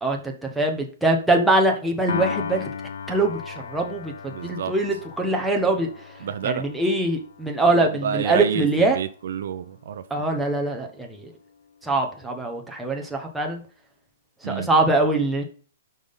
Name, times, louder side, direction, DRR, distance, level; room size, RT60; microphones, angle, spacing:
voice 1, 0.0-2.7 3.1-5.9 6.4-9.0 10.1-11.3 11.8-13.6 14.4-15.4, right 2 dB, ahead, 0.9 m, -23 dB
Piano, 2.1-8.5, left 6 dB, 75° left, 0.8 m, -36 dB
voice 2, 4.3-4.7 6.2-6.6 7.7-10.3 14.4-14.7, right 8 dB, 55° right, 0.6 m, -29 dB
6.1 x 5.3 x 5.3 m
hypercardioid pair, 175°, 0 cm